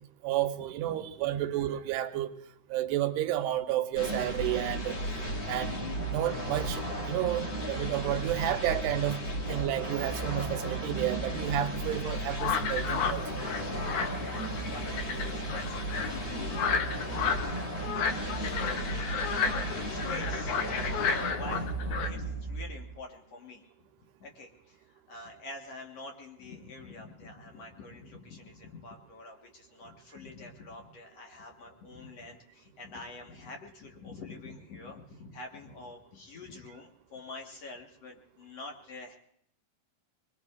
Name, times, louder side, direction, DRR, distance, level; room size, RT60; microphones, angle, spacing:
voice 1, 0.2-2.4 2.7-5.0 5.5-5.7 6.1-9.2 9.5-13.2, right 13 dB, 90° right, 7 dB, 2.9 m, -31 dB
sound 1, 4.0-23.0, right 1 dB, 35° left, 2.5 m, -34 dB
sound 2, 12.4-22.1, left 6 dB, 75° left, 1.7 m, -32 dB
voice 2, 14.1-15.0 15.3-19.4 19.7-20.6 21.0-21.7 22.0-23.7 24.2-39.1, left 2 dB, 60° left, 1 dB, 1.8 m, -47 dB
27.0 x 21.5 x 2.4 m, 0.71 s
omnidirectional pair, 4.6 m